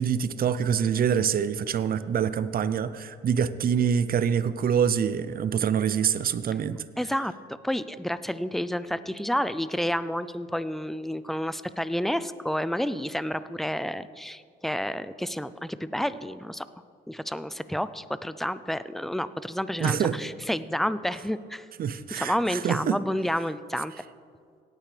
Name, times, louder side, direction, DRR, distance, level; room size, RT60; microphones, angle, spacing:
voice 1, 0.0-6.8 19.8-20.2 21.8-23.0, right 8 dB, 50° right, 14 dB, 0.6 m, -25 dB
voice 2, 7.0-7.3 7.6-16.6 17.1-21.7 22.2-23.9, equal, ahead, 14 dB, 0.4 m, -30 dB
17.5 x 9.1 x 3.3 m, 2.2 s
cardioid pair, 90°, 20 cm